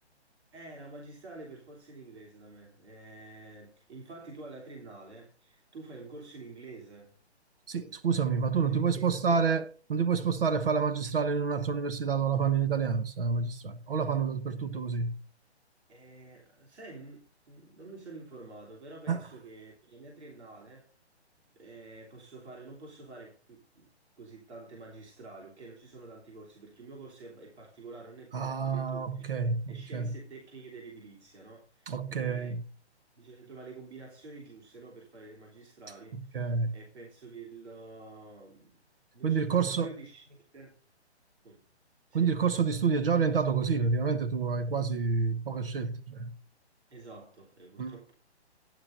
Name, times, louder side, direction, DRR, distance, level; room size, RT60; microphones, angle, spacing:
voice 1, 0.5-7.1 8.7-9.5 15.9-20.9 21.5-29.2 29.7-32.5 33.2-38.8 39.1-40.8 41.4-41.6 42.1-42.4 46.9-48.1, right 3 dB, 75° right, 3.2 m, -48 dB
voice 2, 7.7-9.6 9.9-15.2 19.1-19.2 28.3-30.1 31.9-32.6 36.3-36.7 39.2-39.9 42.1-46.3 47.8-48.0, right 5 dB, 55° right, 1.1 m, -28 dB
15.0 x 10.5 x 2.6 m
hypercardioid pair, 175°, 34 cm